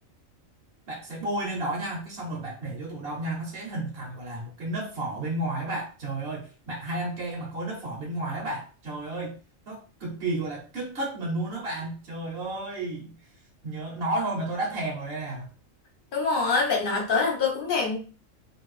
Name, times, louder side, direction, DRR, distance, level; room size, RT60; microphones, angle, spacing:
voice 1, 0.9-9.4 9.7-13.2 13.6-15.5, right 2 dB, 50° right, -2 dB, 1.0 m, -32 dB
voice 2, 16.1-18.0, left 4 dB, 45° left, 1 dB, 1.0 m, -25 dB
2.8 x 2.6 x 3.2 m, 0.34 s
omnidirectional pair, 1.4 m